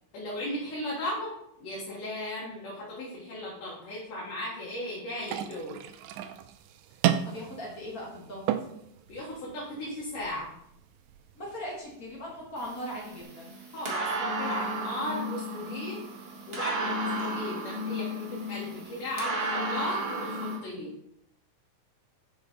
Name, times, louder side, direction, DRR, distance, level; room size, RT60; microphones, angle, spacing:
voice 1, 0.1-1.3 1.6-5.8 9.1-10.5 13.7-16.0 16.5-20.9, left 1 dB, 85° left, -6 dB, 3.2 m, -36 dB
sound 1, 5.2-13.2, right 11 dB, 80° right, 1.7 m, -35 dB
voice 2, 7.2-8.5 11.3-13.6, equal, 35° left, -3 dB, 1.5 m, -39 dB
sound 2, 12.6-20.6, right 1 dB, 50° right, 0.7 m, -33 dB
6.4 x 5.9 x 4.0 m, 0.74 s
omnidirectional pair, 3.6 m